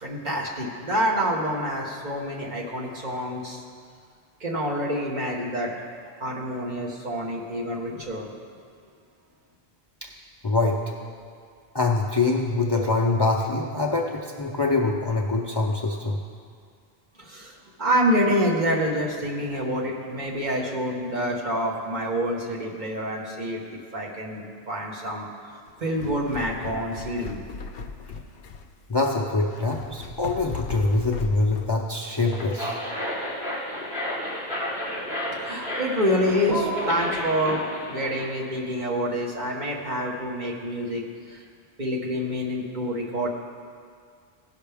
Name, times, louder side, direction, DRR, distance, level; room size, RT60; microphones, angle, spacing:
voice 1, 0.0-3.6 4.4-5.7 6.2-8.3 17.2-25.3 25.8-27.4 35.4-41.4 41.8-43.3, equal, 45° right, -2 dB, 1.3 m, -27 dB
voice 2, 10.4-10.8 11.7-16.2 28.9-32.8, left 3 dB, 30° left, -1 dB, 0.5 m, -24 dB
sound 1, 25.7-31.8, left 5 dB, 70° left, 0.8 m, -38 dB
sound 2, 32.1-38.3, left 1 dB, 80° right, 2.5 m, -31 dB
16.5 x 5.6 x 3.5 m, 2.1 s
omnidirectional pair, 1.0 m